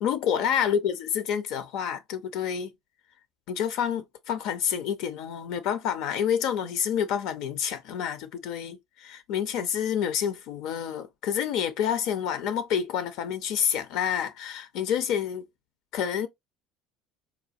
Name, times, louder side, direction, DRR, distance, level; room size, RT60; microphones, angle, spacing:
voice 1, 0.0-2.7 3.5-15.5 15.9-16.3, left 8 dB, 60° left, 0.5 m, -28 dB
4.1 x 2.2 x 2.6 m
hypercardioid pair, 65°, 0 cm